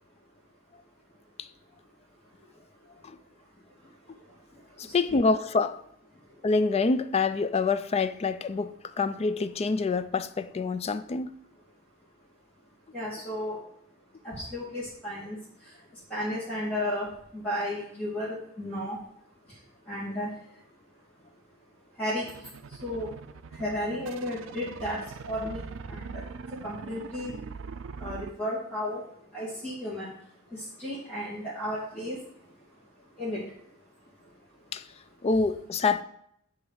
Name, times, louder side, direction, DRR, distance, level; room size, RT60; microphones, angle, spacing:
voice 1, 4.8-5.8 6.4-11.3 34.7-34.8 35.2-36.0, left 4 dB, 30° left, 0.4 m, -26 dB
voice 2, 12.9-13.6 14.2-15.4 16.1-17.0 17.3-19.0 19.9-20.3 22.0-22.3 22.8-23.1 23.6-25.0 25.3-25.6 25.9-26.0 26.6-27.3 28.0-29.0 29.3-30.1 30.8-32.2 33.2-33.4, left 1 dB, 5° left, 2.0 m, -33 dB
sound 1, 22.3-28.3, right 5 dB, 65° right, 0.4 m, -42 dB
8.9 x 3.2 x 6.3 m
head